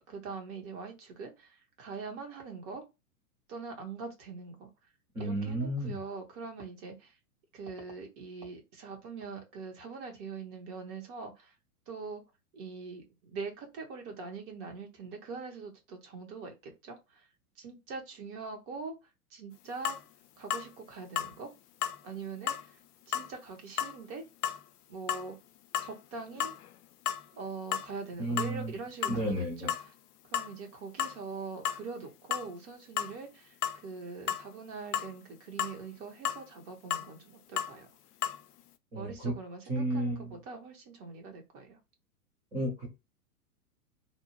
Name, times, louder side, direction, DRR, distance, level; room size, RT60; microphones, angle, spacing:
voice 1, 0.0-2.8 3.5-4.7 5.2-7.1 7.5-11.5 11.9-12.2 12.5-17.3 17.6-20.0 20.4-21.5 22.0-22.8 23.1-24.3 24.9-25.4 25.8-26.5 27.3-29.9 30.3-33.6 33.8-37.9 38.9-41.8, right 4 dB, 30° right, 3 dB, 0.9 m, -43 dB
voice 2, 5.1-6.0 28.2-28.7 29.1-29.7 38.9-39.3 39.7-40.3 42.5-42.9, right 1 dB, 5° right, -5 dB, 0.4 m, -32 dB
sound 1, 19.8-20.0 20.5-20.7 21.2-21.3 21.8-22.0 22.5-22.7 23.1-23.3 23.8-24.0 24.4-24.6 25.1-25.3 25.7-25.9 26.3-26.7 27.1-27.2 27.7-27.9 28.4-28.6 29.0-29.2 29.7-29.9 30.3-30.5 31.0-31.2 31.6-31.8 32.3-32.5 33.0-33.2 33.6-33.8 34.3-34.5 34.9-35.1 35.6-35.8 36.2-36.4 36.9-37.1 37.6-37.7 38.2-38.4, left 10 dB, 80° left, 0.5 m, -33 dB
2.6 x 2.0 x 2.9 m, 0.24 s
hypercardioid pair, 110°, 46 cm